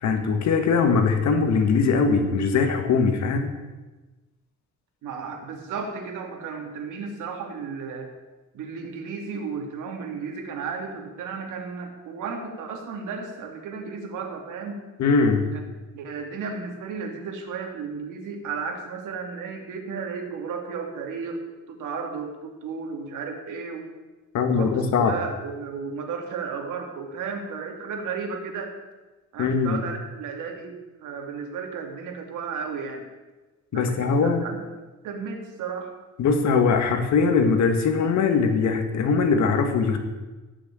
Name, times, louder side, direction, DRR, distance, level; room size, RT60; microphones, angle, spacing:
voice 1, 0.0-3.6 15.0-15.5 24.3-25.2 29.4-29.8 33.7-34.4 36.2-40.0, left 5 dB, 65° left, 5 dB, 1.9 m, -21 dB
voice 2, 5.0-8.2 8.5-14.8 15.5-15.6 15.9-21.4 21.7-23.9 24.6-28.7 29.3-33.1 33.7-34.6 35.0-35.9, right 5 dB, 85° right, 2 dB, 2.8 m, -34 dB
17.5 x 6.5 x 9.3 m, 1.2 s
cardioid pair, 150°, 30 cm